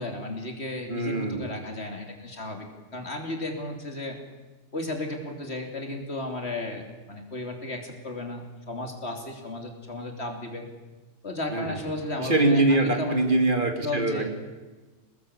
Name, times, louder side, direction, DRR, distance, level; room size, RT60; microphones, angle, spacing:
voice 1, 0.0-2.7 2.9-4.2 4.7-10.7 11.2-13.2 13.8-14.3, left 2 dB, 60° left, 3 dB, 3.6 m, -34 dB
voice 2, 0.9-1.5 11.5-11.8 12.2-14.3, right 2 dB, 45° right, 5 dB, 2.5 m, -23 dB
23.5 x 19.5 x 8.4 m, 1.2 s
omnidirectional pair, 1.2 m